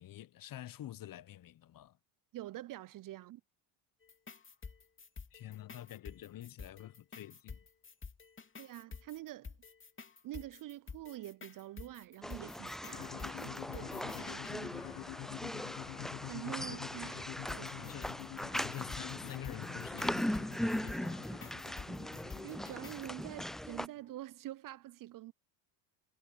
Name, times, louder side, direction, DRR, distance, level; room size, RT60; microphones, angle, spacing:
voice 1, 0.0-2.0 5.3-7.6 17.8-20.3 20.6-21.4, left 13 dB, 45° left, 1.0 m, -48 dB
voice 2, 2.3-3.4 8.6-9.5 10.2-14.9 16.3-17.9 21.9-22.1 22.4-25.3, right 15 dB, 45° right, 0.5 m, -46 dB
sound 1, 4.0-14.6 17.5-23.1, left 5 dB, 25° left, 2.7 m, -50 dB
sound 2, 12.2-23.9, equal, ahead, 0.3 m, -40 dB
sound 3, 12.9-24.1, left 29 dB, 75° left, 0.7 m, -48 dB
supercardioid pair, 80°, 48 cm